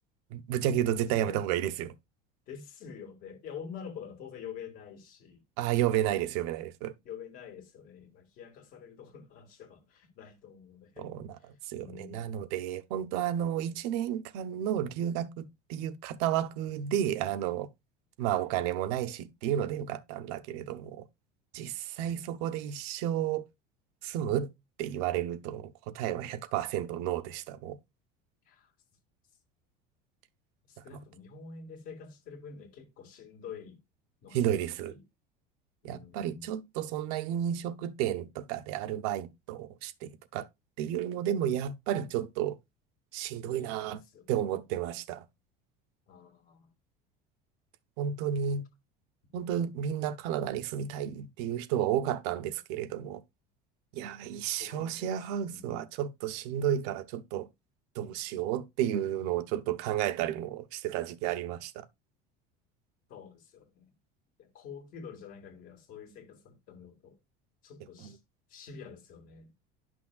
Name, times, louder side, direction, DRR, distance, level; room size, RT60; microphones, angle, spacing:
voice 1, 0.3-1.9 5.6-6.9 11.0-11.3 11.7-15.4 15.7-17.7 18.2-21.0 21.5-23.4 24.0-24.5 24.8-27.8 34.3-34.9 35.8-40.5 40.8-42.6 43.1-44.0 44.3-45.2 48.0-48.6 49.3-53.2 53.9-57.5 58.0-61.8, right 10 dB, 70° right, 0.8 m, -32 dB
voice 2, 1.0-1.4 2.5-5.4 7.0-11.1 11.4-12.5 18.3-18.6 20.9-21.0 28.5-28.7 30.7-33.8 34.2-35.0 35.8-36.5 43.5-44.5 46.1-46.7 49.3-49.6 54.6-55.9 63.1-63.9 64.4-67.2 67.6-68.2 68.5-69.5, left 7 dB, 40° left, 1.9 m, -47 dB
11.0 x 6.0 x 2.3 m
cardioid pair, 175°, 21 cm